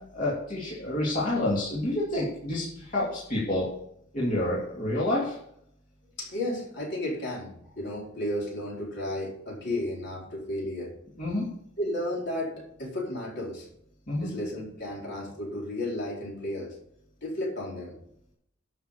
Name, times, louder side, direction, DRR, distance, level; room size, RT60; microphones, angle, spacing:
voice 1, 0.1-3.7 4.1-5.4 11.2-11.4 14.1-14.3, left 1 dB, 40° left, -7 dB, 3.0 m, -28 dB
voice 2, 6.2-10.9 11.8-13.7 14.2-16.8 17.2-17.9, left 1 dB, 55° left, -3 dB, 4.5 m, -33 dB
11.5 x 6.2 x 6.8 m, 0.73 s
head